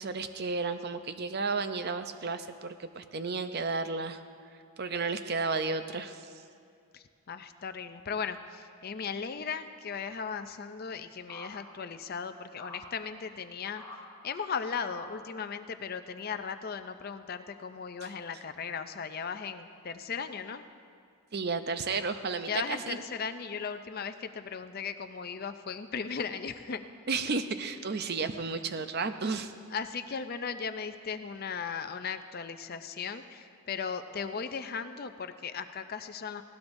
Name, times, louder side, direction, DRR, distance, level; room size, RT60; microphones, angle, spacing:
voice 1, 0.0-4.2 4.8-6.3 21.3-23.0 27.1-29.5, right 4 dB, 45° right, 9 dB, 0.6 m, -32 dB
voice 2, 6.9-13.8 14.2-20.7 22.5-26.8 28.7-28.8 29.7-36.4, left 6 dB, 45° left, 9 dB, 0.5 m, -37 dB
sound 1, 11.3-11.5 12.6-12.8 13.3-13.4 13.8-14.0 14.3-14.4 14.9-15.1 16.2-16.3 16.8-16.9, left 3 dB, 20° left, 2.4 m, -46 dB
19.5 x 17.0 x 2.6 m, 2.3 s
head